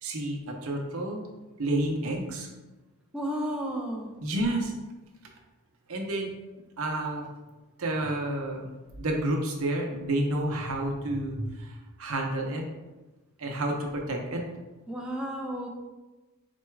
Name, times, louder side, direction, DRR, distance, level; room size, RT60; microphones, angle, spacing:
voice 1, 0.0-1.2 1.6-2.5 4.2-4.7 5.9-6.3 6.8-7.3 7.8-8.7 9.0-12.6 13.4-14.4, right 1 dB, 70° right, 1 dB, 0.7 m, -30 dB
voice 2, 3.1-4.1 14.9-15.7, equal, 5° right, 0 dB, 0.5 m, -32 dB
4.2 x 2.2 x 4.6 m, 1.1 s
head